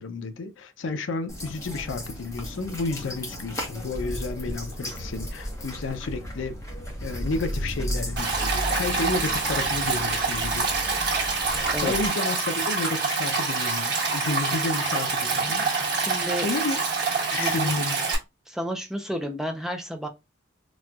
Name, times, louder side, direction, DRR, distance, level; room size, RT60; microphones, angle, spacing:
voice 1, 0.0-6.6 7.0-10.7 11.8-15.9 16.4-16.8 17.3-18.1, left 3 dB, 75° left, 0.5 m, -31 dB
sound 1, 1.3-12.1, equal, 15° left, 0.8 m, -34 dB
Stream, 8.2-18.2, right 4 dB, 55° right, 1.2 m, -26 dB
voice 2, 16.0-16.5 17.4-17.8 18.5-20.1, equal, ahead, 0.4 m, -31 dB
4.1 x 2.2 x 2.2 m
head